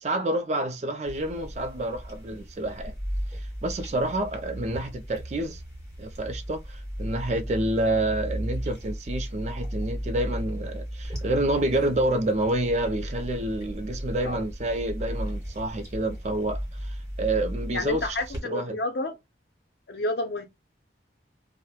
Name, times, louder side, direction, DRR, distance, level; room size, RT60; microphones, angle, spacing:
voice 1, 0.0-2.9 3.3-5.6 6.0-18.2 18.4-18.8, right 1 dB, 35° right, 0.4 m, -28 dB
sound 1, 1.0-18.4, equal, 20° right, 1.2 m, -35 dB
voice 2, 17.7-19.2 19.9-20.5, left 1 dB, 60° left, 0.6 m, -30 dB
3.0 x 2.1 x 2.3 m
head